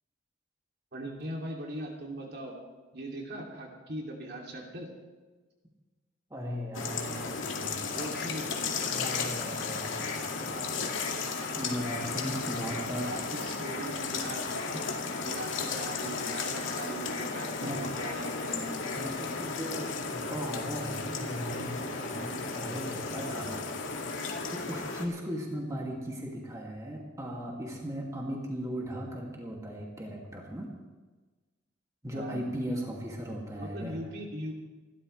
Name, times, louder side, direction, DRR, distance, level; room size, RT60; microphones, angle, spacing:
voice 1, 0.9-2.5 2.9-4.9 7.9-8.7 12.9-18.8 23.3-23.6 32.1-32.4 33.6-34.5, right 1 dB, 55° right, -1 dB, 2.8 m, -40 dB
voice 2, 6.3-7.9 8.9-10.7 11.5-13.1 17.6-17.8 19.0-23.5 24.5-30.7 32.0-34.0, equal, 15° right, -2 dB, 2.4 m, -37 dB
sound 1, 6.7-25.1, left 4 dB, 90° left, 2.1 m, -34 dB
28.0 x 12.5 x 3.3 m, 1.3 s
head